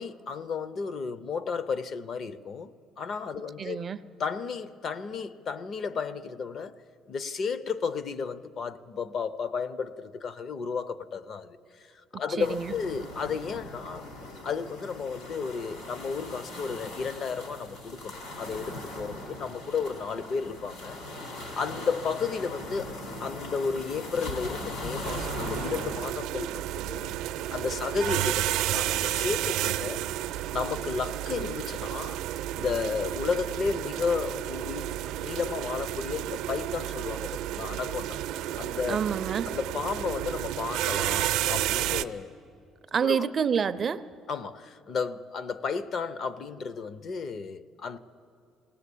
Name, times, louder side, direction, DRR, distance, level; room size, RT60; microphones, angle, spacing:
voice 1, 0.0-2.7 3.0-3.8 4.2-6.8 7.1-14.1 14.4-21.0 21.2-22.9 23.2-27.2 27.5-30.2 30.5-32.2 32.6-38.2 38.6-39.0 39.5-42.3 43.0-43.3 44.3-48.0, left 5 dB, 40° left, 0.5 m, -33 dB
voice 2, 3.6-4.0 12.1-12.7 38.9-39.5 42.9-44.0, right 7 dB, 30° right, 0.4 m, -28 dB
sound 1, 12.4-26.0, left 2 dB, 70° left, 3.8 m, -39 dB
sound 2, 25.0-42.0, right 13 dB, 80° right, 0.6 m, -31 dB
20.0 x 18.0 x 8.3 m
cardioid pair, 170°, 0 cm